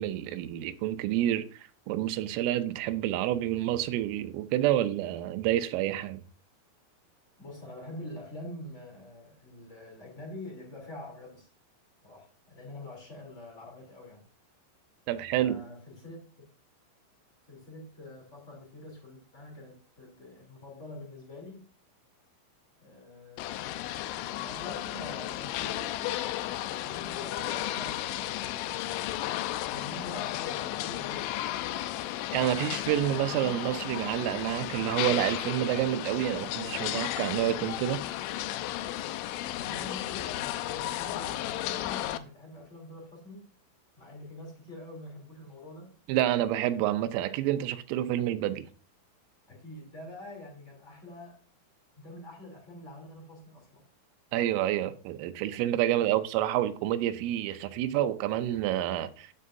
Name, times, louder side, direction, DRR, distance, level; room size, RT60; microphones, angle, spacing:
voice 1, 0.0-1.5 1.9-6.2 15.1-15.6 32.3-38.0 46.1-48.7 54.3-59.3, right 12 dB, 85° right, 3.2 m, -28 dB
voice 2, 7.4-11.5 12.0-14.3 15.3-16.2 17.5-21.7 22.8-23.8 24.4-26.1 26.8-28.8 29.6-31.5 39.4-43.5 44.0-45.9 49.5-51.4 52.0-53.8 55.9-56.2, left 1 dB, 20° left, 2.4 m, -45 dB
sound 1, 23.4-42.2, left 14 dB, 85° left, 2.8 m, -34 dB
13.5 x 7.7 x 2.6 m
omnidirectional pair, 5.8 m